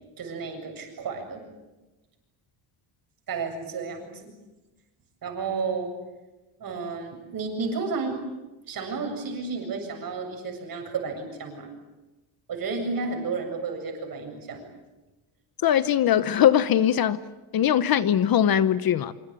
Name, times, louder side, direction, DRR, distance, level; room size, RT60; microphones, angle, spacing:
voice 1, 0.2-1.4 3.3-4.3 5.2-5.9 6.6-8.2 8.7-11.7 12.5-14.6, right 4 dB, 45° right, 7.8 m, -32 dB
voice 2, 15.6-17.2 17.5-19.1, left 10 dB, 45° left, 1.0 m, -21 dB
26.0 x 25.0 x 9.0 m
cardioid pair, 155°, 49 cm